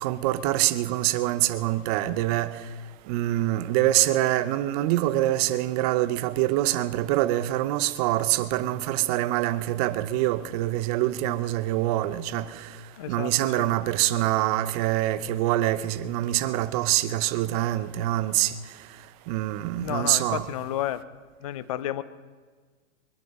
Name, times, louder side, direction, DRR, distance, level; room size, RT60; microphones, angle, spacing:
voice 1, 0.0-2.5 3.1-12.7 13.1-18.5 19.3-20.4, right 15 dB, 30° right, 0.7 m, -25 dB
voice 2, 13.0-13.7 19.8-21.0 21.4-22.0, left 12 dB, 30° left, 0.3 m, -31 dB
23.0 x 10.5 x 5.4 m
hypercardioid pair, 140°, 41 cm